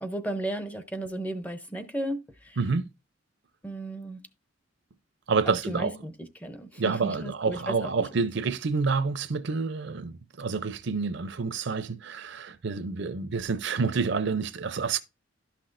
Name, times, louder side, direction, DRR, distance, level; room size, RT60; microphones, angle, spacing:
voice 1, 0.0-2.6 3.6-4.2 5.4-7.9, right 1 dB, 10° left, 0.6 m, -34 dB
voice 2, 2.6-2.9 5.3-5.9 6.8-15.0, right 4 dB, 65° right, 0.6 m, -28 dB
11.5 x 5.9 x 2.5 m
head